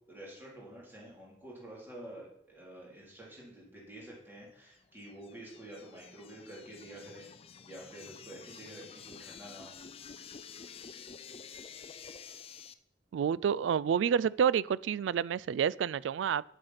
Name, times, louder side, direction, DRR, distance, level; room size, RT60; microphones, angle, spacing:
voice 1, 0.1-7.3 7.6-9.8, right 1 dB, 10° right, -5 dB, 3.5 m, -49 dB
sound 1, 4.8-12.7, left 6 dB, 30° left, 0.4 m, -50 dB
voice 2, 13.1-16.4, right 8 dB, 90° right, 20 dB, 0.3 m, -29 dB
8.6 x 7.8 x 5.7 m, 0.75 s
head